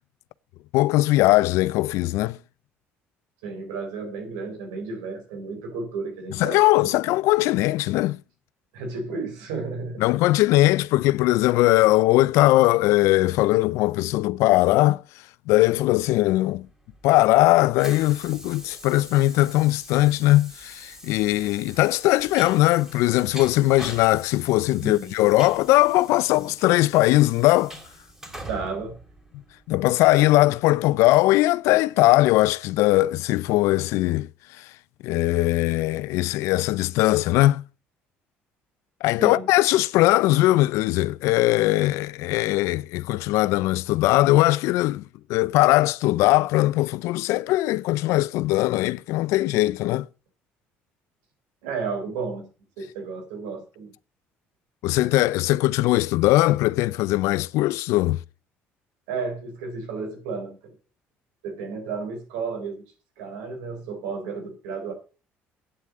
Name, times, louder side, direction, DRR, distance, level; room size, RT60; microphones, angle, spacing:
voice 1, 0.7-2.4 6.4-8.2 10.0-15.0 15.5-16.7 17.0-27.7 29.7-34.3 34.6-34.7 35.0-37.6 39.0-45.0 45.3-50.1 54.8-58.2, left 17 dB, 80° left, 0.5 m, -20 dB
voice 2, 3.4-6.9 8.7-10.0 24.8-25.1 28.5-29.0 39.2-39.5 51.6-52.5 52.8-53.9 59.1-60.7 61.4-62.8 63.2-64.9, right 4 dB, 90° right, 4.2 m, -32 dB
Train, 16.6-29.8, right 1 dB, 10° right, 3.4 m, -44 dB
9.1 x 8.2 x 7.2 m
supercardioid pair, 80°, 5 cm